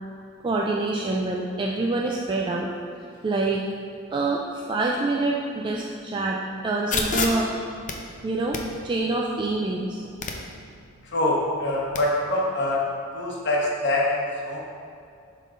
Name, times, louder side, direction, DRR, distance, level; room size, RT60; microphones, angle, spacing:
voice 1, 0.4-2.7 3.2-3.6 4.1-7.5 8.2-10.0, right 2 dB, 25° right, -2 dB, 0.3 m, -26 dB
sound 1, 6.9-12.0, left 4 dB, 40° left, 0.5 m, -33 dB
voice 2, 11.0-12.8 13.1-14.6, left 1 dB, 55° left, -3 dB, 1.1 m, -24 dB
10.5 x 3.7 x 2.5 m, 2.4 s
head